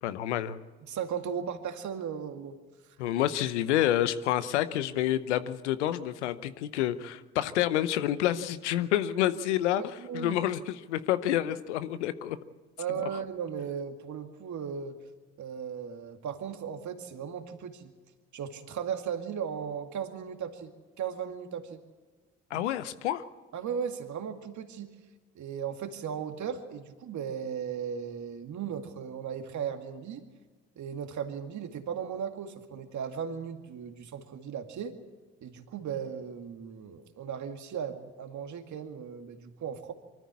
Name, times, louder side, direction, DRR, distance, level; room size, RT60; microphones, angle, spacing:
voice 1, 0.0-0.6 3.0-9.8 10.1-12.4 22.5-23.2, left 12 dB, 85° left, 14 dB, 0.8 m, -28 dB
voice 2, 0.9-2.6 9.8-10.4 12.8-15.0 15.4-17.9 18.3-20.7 21.0-21.8 22.5-22.6 23.5-24.9 25.4-30.2 30.8-35.0 35.4-39.9, right 7 dB, 55° right, 6 dB, 2.3 m, -36 dB
24.0 x 14.0 x 8.4 m, 1.3 s
hypercardioid pair, 50°, 34 cm